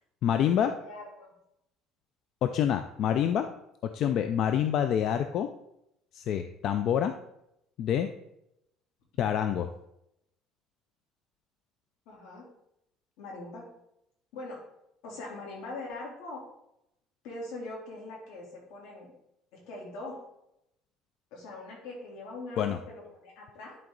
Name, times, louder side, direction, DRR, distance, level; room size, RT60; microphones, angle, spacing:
voice 1, 0.2-0.8 2.4-3.5 3.9-5.5 6.1-7.1 7.8-8.1 9.2-9.7 22.6-22.8, left 9 dB, 50° left, 8 dB, 0.4 m, -27 dB
voice 2, 0.8-1.3 12.0-12.5 13.2-13.7 14.3-14.6 15.0-16.4 17.2-19.1 19.5-20.2 21.3-23.8, left 2 dB, 80° left, -2 dB, 3.4 m, -42 dB
10.5 x 4.5 x 3.9 m, 0.81 s
cardioid pair, 155°, 0 cm